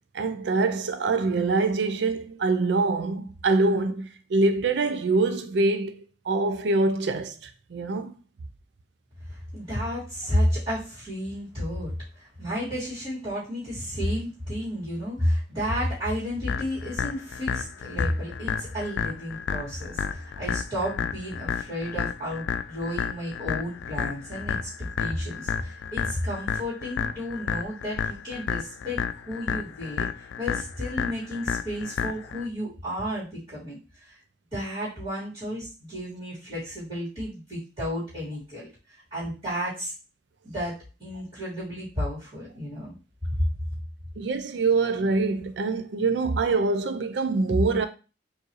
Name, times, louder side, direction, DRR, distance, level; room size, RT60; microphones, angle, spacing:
voice 1, 0.1-6.0 6.3-8.1 44.2-47.9, right 3 dB, 70° right, 0.4 m, -24 dB
voice 2, 9.3-24.7 25.0-34.2 34.5-38.7 39.1-39.9 40.4-40.7 41.0-42.9 43.4-43.5, equal, 30° right, 2.2 m, -32 dB
sound 1, 16.5-32.5, left 7 dB, 85° left, 0.3 m, -31 dB
4.6 x 2.7 x 3.0 m
head